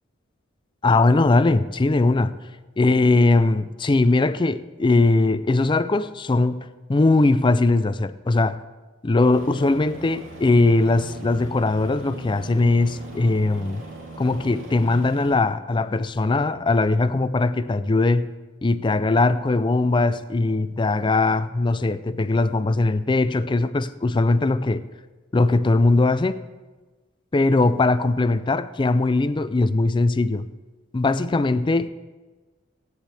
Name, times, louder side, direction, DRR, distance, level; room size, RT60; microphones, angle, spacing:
voice 1, 0.8-2.4 2.8-8.6 9.0-13.8 14.2-18.3 18.6-24.8 25.3-26.4 27.3-30.5 30.9-31.9, left 2 dB, 25° left, 0.4 m, -20 dB
Aircraft, 9.3-15.3, right 2 dB, 85° right, 3.1 m, -39 dB
16.5 x 9.5 x 3.5 m
head